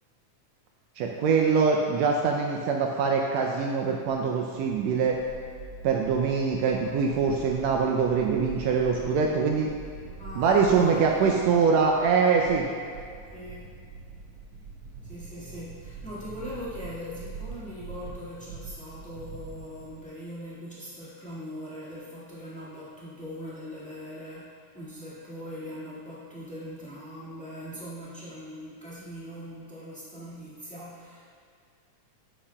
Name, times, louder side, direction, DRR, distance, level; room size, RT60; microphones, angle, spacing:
voice 1, 1.0-5.2 5.8-9.7 10.4-12.7, right 5 dB, 85° right, 1 dB, 1.5 m, -23 dB
sound 1, 4.6-20.1, right 4 dB, 65° right, 2.4 m, -44 dB
voice 2, 10.2-11.4 13.3-13.7 15.0-31.2, equal, 10° left, -10 dB, 0.4 m, -41 dB
9.8 x 8.5 x 2.2 m, 2.2 s
omnidirectional pair, 3.6 m